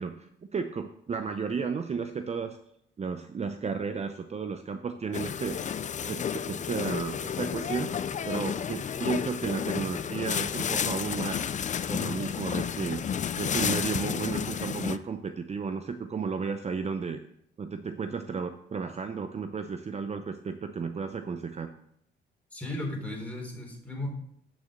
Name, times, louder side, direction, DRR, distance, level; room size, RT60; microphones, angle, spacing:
voice 1, 0.0-2.6 3.0-5.6 6.0-7.9 8.3-11.4 11.9-13.0 13.4-17.2 17.6-21.7, right 5 dB, 35° right, 8 dB, 0.7 m, -33 dB
sound 1, 5.1-15.0, left 8 dB, 40° left, 0.5 m, -31 dB
voice 2, 22.5-24.1, left 1 dB, 5° left, 0 dB, 3.7 m, -35 dB
8.9 x 6.8 x 6.6 m, 0.72 s
cardioid pair, 90°, 20 cm